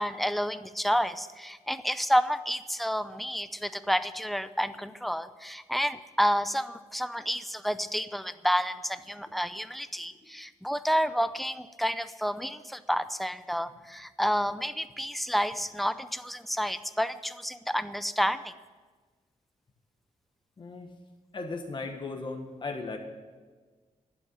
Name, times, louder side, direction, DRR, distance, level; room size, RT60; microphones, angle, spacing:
voice 1, 0.0-18.5, equal, ahead, 13 dB, 0.5 m, -30 dB
voice 2, 20.6-20.9 21.3-23.0, left 3 dB, 40° left, 3 dB, 1.3 m, -36 dB
11.0 x 7.7 x 9.8 m, 1.4 s
wide cardioid pair, 130°, 13 cm